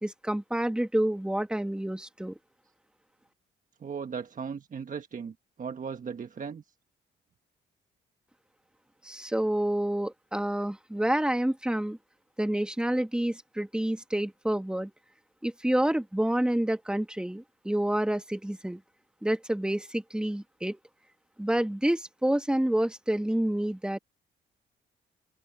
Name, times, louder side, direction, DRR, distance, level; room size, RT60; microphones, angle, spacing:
voice 1, 0.0-2.3 9.0-12.0 12.4-14.9 15.4-18.8 19.2-20.8 21.4-24.0, right 1 dB, 5° right, 2.0 m, -28 dB
voice 2, 3.8-6.6, right 6 dB, 40° right, 1.4 m, -37 dB
open air
cardioid pair, 90°, 20 cm